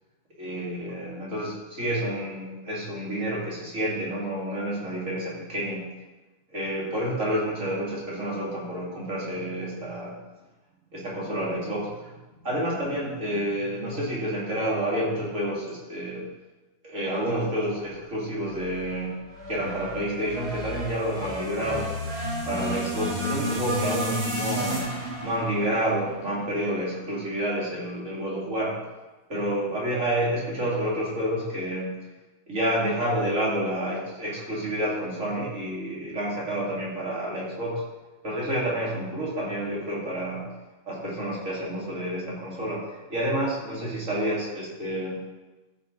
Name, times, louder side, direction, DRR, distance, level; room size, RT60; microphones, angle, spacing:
voice 1, 0.4-5.9 6.5-10.1 10.9-12.1 12.4-16.3 16.8-19.2 19.5-21.9 22.5-24.9 25.2-28.8 29.3-32.0 32.5-37.8 38.2-40.5 40.9-42.8 43.1-45.2, right 1 dB, 50° right, -6 dB, 3.4 m, -29 dB
sound 1, 18.5-26.8, equal, 80° right, 2.6 m, -32 dB
13.5 x 6.5 x 4.2 m, 1.1 s
omnidirectional pair, 1.7 m